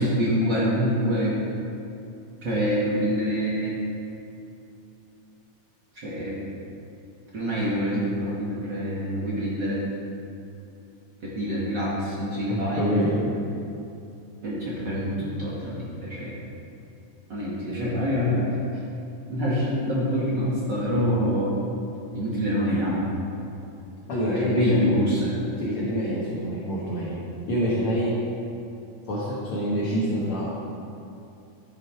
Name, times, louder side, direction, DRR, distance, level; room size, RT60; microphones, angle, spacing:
voice 1, 0.0-1.4 2.4-3.8 5.9-6.4 7.3-9.8 11.2-13.3 14.4-16.3 17.3-18.5 19.3-21.5 22.1-23.1 24.4-25.4, equal, 45° right, -6 dB, 1.5 m, -25 dB
voice 2, 12.5-13.2 24.1-24.8 25.6-27.2 27.5-28.1 29.1-30.5, equal, 55° left, -8 dB, 1.8 m, -26 dB
11.0 x 6.5 x 4.6 m, 2.7 s
omnidirectional pair, 3.7 m